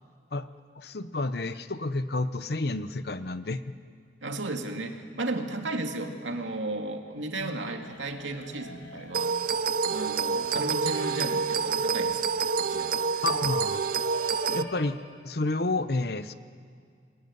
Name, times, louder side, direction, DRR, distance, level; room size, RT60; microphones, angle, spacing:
voice 1, 0.8-3.6 13.2-13.8 14.5-15.0 15.2-16.3, left 2 dB, 55° left, 12 dB, 0.9 m, -30 dB
voice 2, 4.2-9.4 9.9-12.2 12.6-12.9, right 2 dB, 80° right, 3 dB, 2.5 m, -34 dB
sound 1, 7.8-14.9, left 1 dB, 80° left, 5.3 m, -47 dB
sound 2, 9.1-14.6, right 5 dB, 45° right, 0.6 m, -27 dB
29.0 x 20.0 x 9.7 m, 2.2 s
head